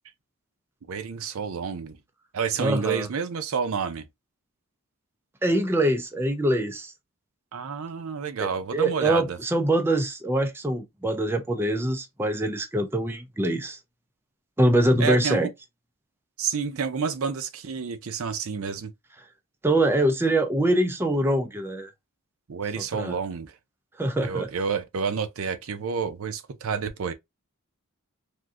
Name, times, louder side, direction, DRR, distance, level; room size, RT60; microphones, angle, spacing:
voice 1, 0.9-2.0 2.3-4.1 7.5-9.4 15.0-15.5 16.4-18.9 22.5-23.5 24.2-27.1, right 6 dB, 70° right, 0.5 m, -29 dB
voice 2, 2.6-3.1 5.4-6.9 8.4-13.8 14.6-15.5 19.6-21.9 22.8-23.2 24.0-24.5, right 1 dB, 10° right, 0.4 m, -24 dB
3.5 x 2.6 x 2.4 m
head